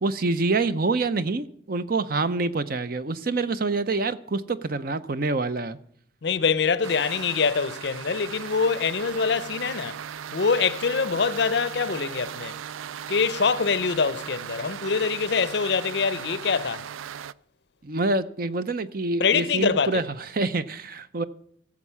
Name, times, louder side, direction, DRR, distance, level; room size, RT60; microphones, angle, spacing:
voice 1, 0.0-5.8 17.8-20.0 20.3-21.2, right 3 dB, 45° right, 0.6 m, -26 dB
voice 2, 6.2-10.0 10.3-12.6 13.1-16.9 19.2-20.0, left 5 dB, 55° left, 0.5 m, -24 dB
sound 1, 6.8-17.3, right 9 dB, 85° right, 0.4 m, -37 dB
15.5 x 7.2 x 5.6 m
head